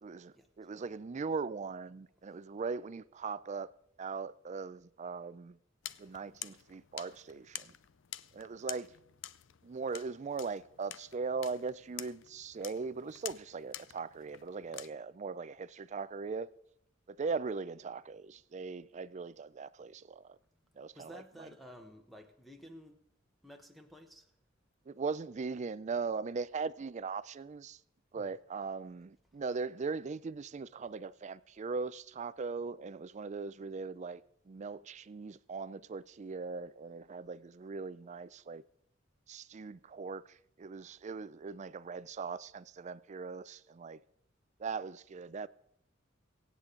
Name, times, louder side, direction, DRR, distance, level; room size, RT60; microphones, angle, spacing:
voice 1, 0.0-3.7 4.0-5.6 6.0-7.7 8.3-8.9 9.6-16.5 17.1-20.4 20.8-21.5 24.9-27.8 28.1-38.6 39.3-44.0 44.6-45.5, right 4 dB, 35° right, 0.4 m, -39 dB
sound 1, 5.8-14.9, left 13 dB, 70° left, 0.5 m, -48 dB
voice 2, 20.9-23.0 23.4-24.3 28.1-28.3, equal, ahead, 1.0 m, -52 dB
23.5 x 8.3 x 3.8 m
head